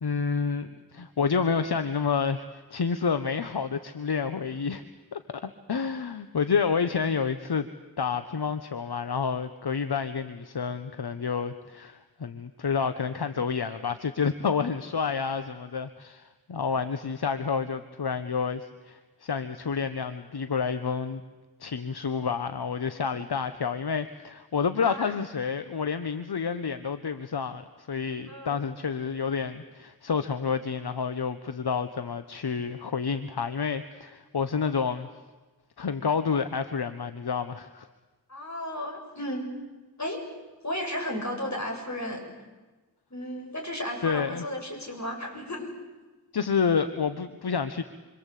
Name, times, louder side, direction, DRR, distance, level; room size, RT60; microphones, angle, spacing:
voice 1, 0.0-4.8 5.1-7.7 8.0-21.2 21.6-35.1 35.8-37.9 44.0-44.4 46.3-47.8, left 6 dB, 70° left, 10 dB, 1.2 m, -29 dB
voice 2, 22.9-23.2 24.8-25.1 28.3-28.6 38.3-39.5 40.0-40.2 40.6-42.2 43.1-45.7, left 1 dB, 45° left, 2 dB, 7.7 m, -34 dB
27.0 x 25.5 x 8.4 m, 1.2 s
wide cardioid pair, 55°, 39 cm